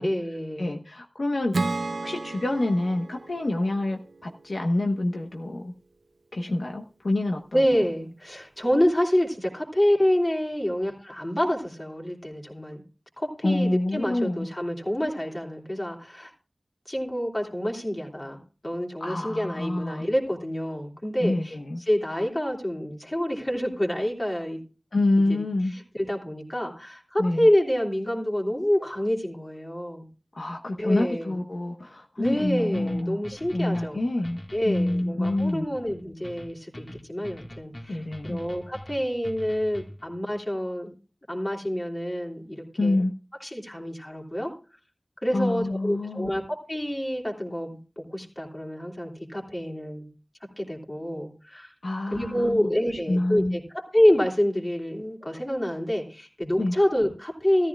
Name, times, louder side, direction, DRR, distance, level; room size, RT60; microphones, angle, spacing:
voice 1, 0.0-0.8 7.5-12.8 13.2-16.3 16.9-21.5 21.9-24.6 25.3-25.4 25.7-30.1 30.8-31.3 32.2-34.0 34.5-40.9 41.3-42.9 43.4-44.5 45.2-50.1 50.6-51.7 52.1-57.7, equal, 25° left, 0 dB, 3.2 m, -27 dB
voice 2, 0.6-1.6 2.0-5.7 6.3-7.8 13.4-14.5 19.0-20.1 21.2-21.8 24.9-25.7 27.2-27.5 30.3-33.2 33.5-35.7 37.9-38.4 42.8-43.1 45.3-46.3 51.8-52.7 53.1-53.6 56.6-56.7, left 2 dB, 70° left, 2 dB, 1.2 m, -27 dB
Acoustic guitar / Strum, 1.5-5.0, right 3 dB, 85° right, 0.6 m, -33 dB
sound 1, 32.2-40.1, equal, 45° left, 1.8 m, -43 dB
15.5 x 14.0 x 2.4 m, 0.36 s
wide cardioid pair, 70°, 0 cm